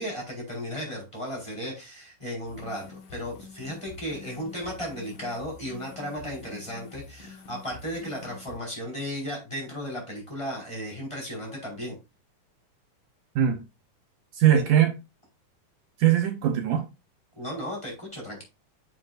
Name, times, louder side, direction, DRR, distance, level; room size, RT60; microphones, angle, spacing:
voice 1, 0.0-12.0 14.5-14.6 17.4-18.4, equal, 10° left, 4.3 m, -35 dB
sound 1, 2.4-8.6, left 4 dB, 85° left, 1.0 m, -47 dB
voice 2, 14.3-14.9 16.0-16.8, right 10 dB, 70° right, 2.3 m, -21 dB
8.9 x 7.2 x 2.5 m
omnidirectional pair, 3.8 m